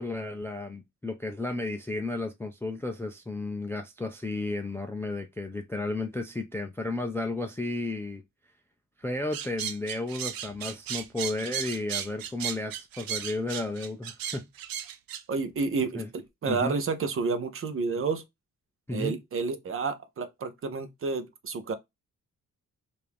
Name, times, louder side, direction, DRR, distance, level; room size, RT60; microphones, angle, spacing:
voice 1, 0.0-8.2 9.0-14.5 15.9-16.1 16.5-16.8 18.9-19.2, left 2 dB, 10° left, 0.3 m, -33 dB
sound 1, 9.3-15.2, right 9 dB, 90° right, 0.6 m, -35 dB
voice 2, 15.3-18.2 18.9-21.7, right 4 dB, 40° right, 0.6 m, -30 dB
4.7 x 2.6 x 3.3 m
wide cardioid pair, 175°, 34 cm